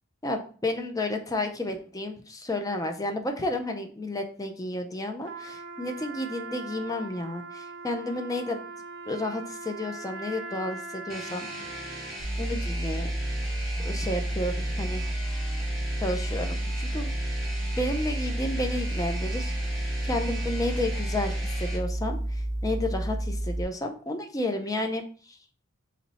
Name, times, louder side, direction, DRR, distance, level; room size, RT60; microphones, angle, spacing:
voice 1, 0.2-8.6 9.1-11.5 12.4-13.1 13.8-15.0 16.0-17.1 17.8-25.4, left 1 dB, 15° left, 5 dB, 0.5 m, -32 dB
Trumpet, 5.2-12.2, right 3 dB, 60° right, 0.5 m, -41 dB
sound 1, 11.1-21.8, right 1 dB, ahead, 1.2 m, -39 dB
sound 2, 12.2-23.6, right 1 dB, 85° left, 1.2 m, -30 dB
4.2 x 3.1 x 4.0 m, 0.43 s
head